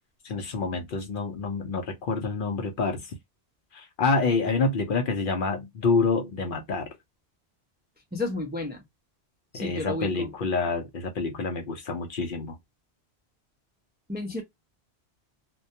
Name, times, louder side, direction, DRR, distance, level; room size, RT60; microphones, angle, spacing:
voice 1, 0.2-3.1 3.7-6.9 9.5-12.6, left 4 dB, 60° left, 0.7 m, -27 dB
voice 2, 8.1-8.8 9.5-10.3 14.1-14.4, left 2 dB, 15° right, 0.4 m, -32 dB
2.2 x 2.1 x 2.6 m
omnidirectional pair, 1.1 m